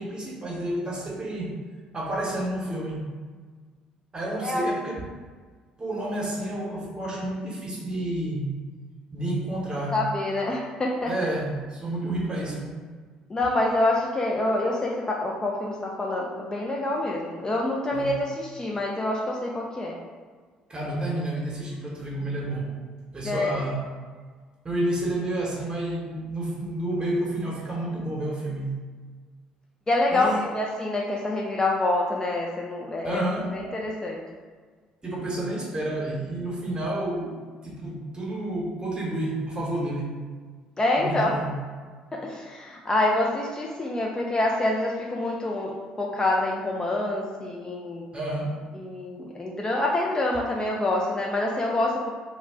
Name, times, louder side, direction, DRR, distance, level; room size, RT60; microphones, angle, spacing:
voice 1, 0.0-1.6 1.9-3.1 4.1-5.1 5.8-8.5 9.1-10.0 11.0-12.8 17.9-18.1 20.7-22.7 23.1-23.8 24.6-28.8 30.1-30.5 33.0-33.6 35.0-40.2 41.0-41.5 48.1-48.6, right 1 dB, 25° right, -4 dB, 1.0 m, -30 dB
voice 2, 9.9-11.3 13.3-20.0 23.2-23.5 29.9-33.2 33.5-34.2 40.8-41.4 42.1-48.1 48.7-52.1, left 2 dB, 20° left, -1 dB, 0.4 m, -26 dB
2.2 x 2.1 x 3.5 m, 1.5 s
figure-of-eight pair, 50°, 3 cm